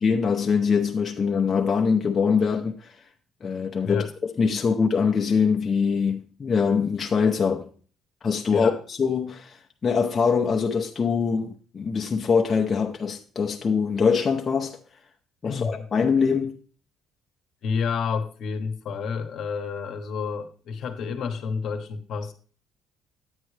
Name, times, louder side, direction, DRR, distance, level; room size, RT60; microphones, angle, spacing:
voice 1, 0.0-3.0 3.4-7.7 8.2-14.8 15.4-16.5, left 5 dB, 25° left, 0.6 m, -23 dB
voice 2, 15.4-15.9 17.6-22.3, left 5 dB, 55° left, 1.0 m, -29 dB
9.6 x 8.9 x 3.2 m
cardioid pair, 155°, 0 cm